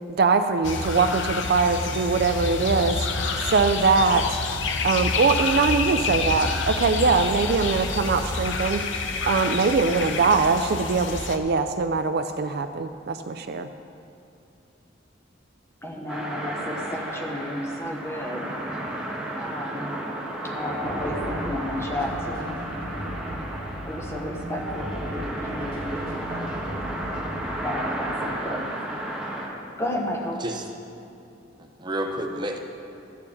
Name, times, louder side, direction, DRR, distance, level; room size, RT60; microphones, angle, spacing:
voice 1, 0.2-3.0 3.5-4.4 4.8-8.8 9.3-13.7, right 4 dB, 55° right, 8 dB, 0.4 m, -22 dB
sound 1, 0.6-11.4, left 4 dB, 70° left, 0.7 m, -28 dB
voice 2, 15.8-18.5 19.4-20.0 20.4-22.7 23.8-25.9 27.6-28.7 29.8-30.5, left 1 dB, 15° left, 0 dB, 1.0 m, -32 dB
sound 2, 16.1-29.5, right 1 dB, 5° right, 1.3 m, -33 dB
sound 3, 20.5-27.6, equal, 50° left, 2.5 m, -36 dB
voice 3, 31.6-32.6, right 1 dB, 20° right, 3 dB, 0.7 m, -30 dB
13.0 x 4.6 x 8.4 m, 2.6 s
head